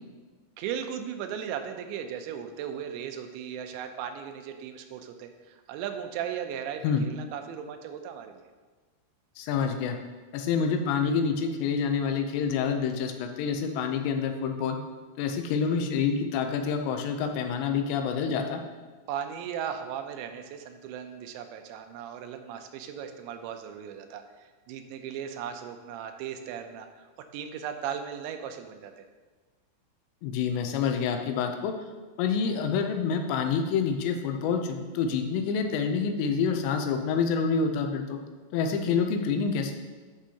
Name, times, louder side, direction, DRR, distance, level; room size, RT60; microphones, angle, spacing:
voice 1, 0.6-8.4 19.1-29.1, right 8 dB, 90° right, 7 dB, 2.9 m, -37 dB
voice 2, 9.4-10.0 10.3-14.8 15.2-18.6 30.2-31.8 32.2-38.2 38.5-39.7, left 6 dB, 85° left, 5 dB, 2.9 m, -27 dB
9.7 x 6.2 x 2.8 m, 1.4 s
omnidirectional pair, 5.1 m